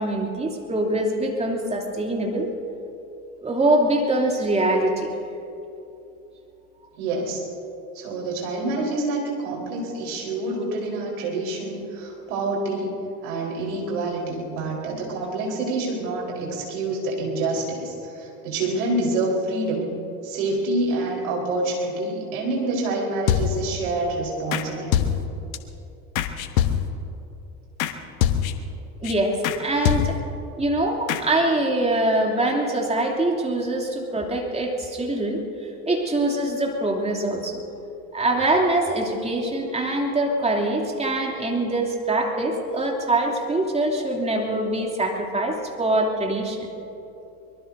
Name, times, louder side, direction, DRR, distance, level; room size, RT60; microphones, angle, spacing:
voice 1, 0.0-2.5 3.4-5.1 29.0-30.2 30.6-37.6 38.1-46.7, right 1 dB, 15° right, 0 dB, 2.7 m, -24 dB
voice 2, 7.0-7.4 7.9-13.0 13.2-19.9 20.2-25.1, right 2 dB, 70° right, -2 dB, 4.2 m, -27 dB
sound 1, 23.3-23.8 24.5-24.7 24.9-25.6 26.2-27.1 27.8-27.9 28.2-28.7 29.0-29.1 29.4-29.6 29.8-30.4 31.1-31.2, left 9 dB, 65° left, 1.1 m, -24 dB
24.0 x 22.0 x 2.7 m, 2.9 s
figure-of-eight pair, 70°, 44 cm